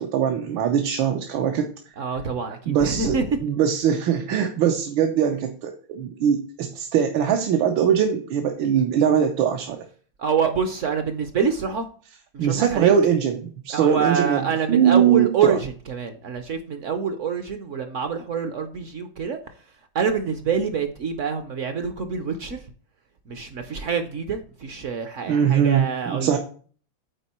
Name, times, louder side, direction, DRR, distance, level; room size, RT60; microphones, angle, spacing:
voice 1, 0.0-1.7 2.7-9.8 12.4-15.6 25.3-26.4, right 8 dB, 85° right, 3 dB, 1.6 m, -21 dB
voice 2, 2.0-3.2 10.2-11.9 12.3-12.9 13.7-19.4 19.9-22.6 23.3-26.4, right 6 dB, 60° right, 8 dB, 0.8 m, -26 dB
9.1 x 4.4 x 4.2 m, 0.42 s
omnidirectional pair, 2.1 m